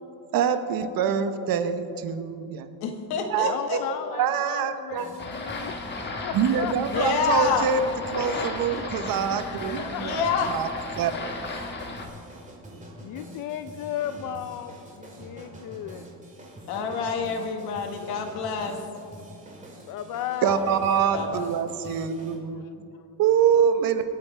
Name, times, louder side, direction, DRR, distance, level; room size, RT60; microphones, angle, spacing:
voice 1, 0.3-2.7 3.3-3.8 4.1-5.5 6.3-7.8 8.1-10.2 10.5-10.7 11.0-11.3 20.4-22.6 23.2-24.0, right 7 dB, 60° right, 9 dB, 1.0 m, -25 dB
voice 2, 2.8-3.8 6.9-7.7 10.0-10.5 16.7-18.8 21.1-21.5, left 5 dB, 80° left, 4 dB, 1.8 m, -27 dB
voice 3, 3.5-7.1 9.3-10.5 10.7-11.2 11.7-11.9 13.0-16.0 19.8-20.8 21.8-22.1 22.5-23.0, left 10 dB, 55° left, 10 dB, 0.6 m, -36 dB
sound 1, 4.9-22.4, right 1 dB, 20° right, 2.1 m, -45 dB
sound 2, 5.2-12.1, left 3 dB, 25° left, 1.4 m, -35 dB
26.0 x 9.2 x 3.4 m, 2.6 s
cardioid pair, 150°, 38 cm